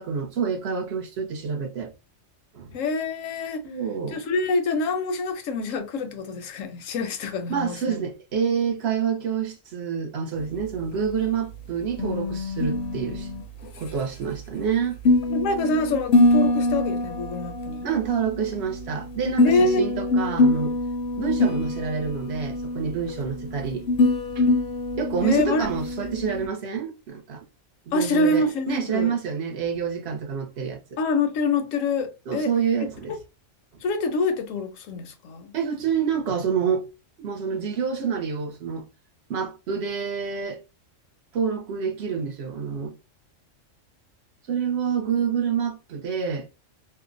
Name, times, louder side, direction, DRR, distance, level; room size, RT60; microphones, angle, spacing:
voice 1, 0.0-1.9 2.5-2.8 3.6-4.2 7.5-13.3 13.8-15.0 17.8-20.8 21.2-23.9 24.4-24.5 24.9-27.4 27.9-30.8 32.3-33.2 35.5-36.9 37.2-38.9 39.3-40.6 41.3-42.9 44.5-46.5, right 7 dB, 60° right, 0.9 m, -27 dB
voice 2, 2.7-3.7 4.1-8.0 15.3-17.9 19.4-19.8 25.2-25.7 27.9-29.1 31.0-32.5 32.8-33.2 33.8-35.5, left 3 dB, 80° left, 1.0 m, -26 dB
sound 1, 10.4-26.5, left 2 dB, 65° left, 0.7 m, -25 dB
2.6 x 2.0 x 2.5 m
omnidirectional pair, 1.3 m